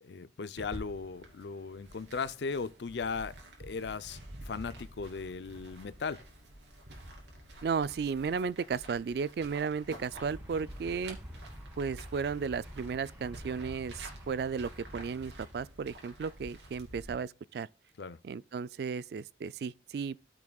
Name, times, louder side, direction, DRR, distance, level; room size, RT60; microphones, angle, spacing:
voice 1, 0.0-3.3 3.6-4.2 4.5-6.2 18.0-18.2, left 5 dB, 70° left, 0.5 m, -37 dB
sound 1, 0.6-17.1, right 1 dB, 80° right, 2.8 m, -49 dB
voice 2, 7.6-11.2 11.8-17.7 18.2-20.2, right 5 dB, 60° right, 0.3 m, -34 dB
sound 2, 10.1-15.7, equal, 10° right, 1.7 m, -49 dB
14.0 x 6.1 x 2.3 m
head